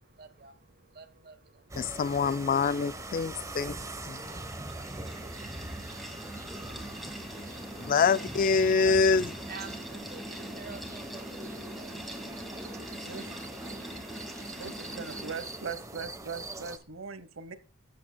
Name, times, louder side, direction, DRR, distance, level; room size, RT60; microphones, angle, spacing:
voice 1, 0.0-2.2 9.2-13.3, right 5 dB, 50° right, 1.2 m, -51 dB
sound 1, 1.7-16.8, right 2 dB, 15° right, 0.9 m, -43 dB
voice 2, 1.8-4.2 6.7-6.8 7.7-9.4, left 5 dB, 45° left, 0.3 m, -26 dB
sound 2, 3.7-15.8, equal, ahead, 1.8 m, -43 dB
voice 3, 12.9-13.5 14.6-17.5, right 5 dB, 85° right, 1.0 m, -40 dB
13.5 x 8.7 x 2.2 m
head